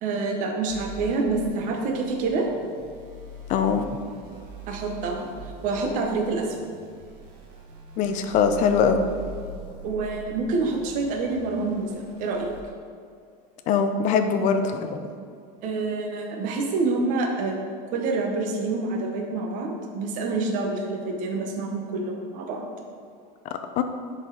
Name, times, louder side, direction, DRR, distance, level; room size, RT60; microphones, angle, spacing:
voice 1, 0.0-2.5 4.7-5.3 5.6-6.7 9.8-12.5 15.6-17.6 17.9-22.7, right 3 dB, 40° right, 1 dB, 1.0 m, -27 dB
sound 1, 0.7-12.6, equal, 90° right, 1.5 m, -42 dB
voice 2, 3.5-3.9 8.0-9.0 13.7-15.1 23.8-23.9, left 6 dB, 40° left, 7 dB, 0.6 m, -22 dB
10.5 x 4.2 x 3.9 m, 2.2 s
supercardioid pair, 155°, 20 cm